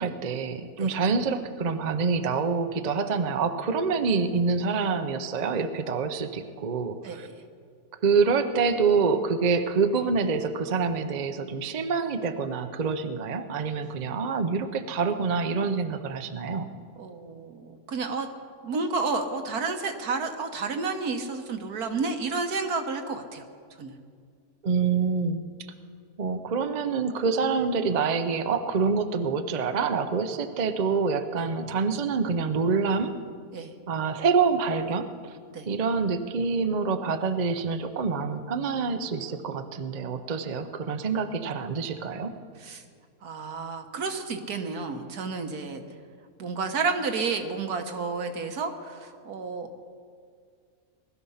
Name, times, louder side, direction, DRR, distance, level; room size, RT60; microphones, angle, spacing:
voice 1, 0.0-7.3 8.0-16.7 24.6-25.4 26.2-33.1 33.9-35.3 35.7-42.3, right 5 dB, 40° right, 8 dB, 0.7 m, -26 dB
voice 2, 17.0-18.3 18.6-23.5 23.8-23.9 33.5-33.7 35.5-35.7 42.6-42.8 43.2-45.8 46.4-49.8, right 4 dB, 75° right, 6 dB, 1.7 m, -31 dB
20.0 x 13.0 x 5.6 m, 2.1 s
omnidirectional pair, 1.6 m